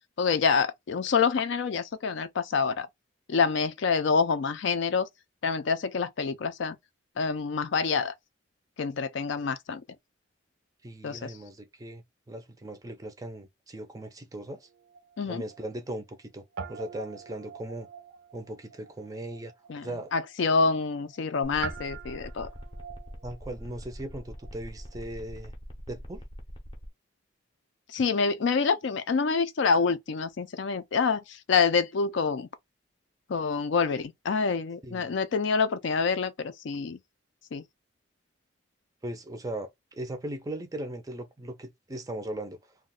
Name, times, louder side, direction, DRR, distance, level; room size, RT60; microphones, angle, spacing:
voice 1, 0.2-2.9 3.3-5.1 5.4-6.8 7.2-8.1 8.8-9.8 11.0-11.3 15.2-15.4 19.7-22.5 27.9-32.5 33.3-37.0 37.5-37.6, left 5 dB, 70° left, 0.4 m, -27 dB
voice 2, 10.8-14.7 15.3-17.9 18.3-19.5 19.8-20.1 23.2-25.5 25.9-26.2 34.8-35.1 39.0-42.6, right 1 dB, 20° right, 0.4 m, -38 dB
Guitar, 14.5-16.2 16.5-25.2, right 7 dB, 85° right, 0.5 m, -45 dB
sound 1, 21.4-26.9, equal, 25° left, 0.6 m, -44 dB
2.3 x 2.1 x 3.6 m
head